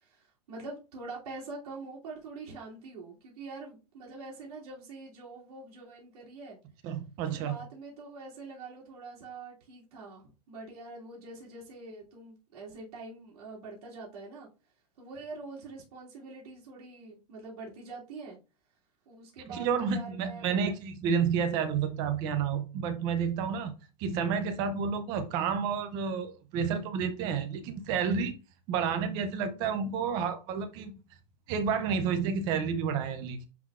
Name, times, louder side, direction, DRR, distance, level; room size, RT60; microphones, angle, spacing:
voice 1, 0.0-6.6 7.2-14.5 15.0-18.4 19.1-20.6, right 3 dB, 65° right, 2.8 m, -45 dB
voice 2, 6.8-7.6 19.5-23.7 24.0-28.3 28.7-31.0 31.5-33.5, right 6 dB, 20° right, 0.5 m, -30 dB
9.9 x 4.0 x 2.4 m
supercardioid pair, 180°, 21 cm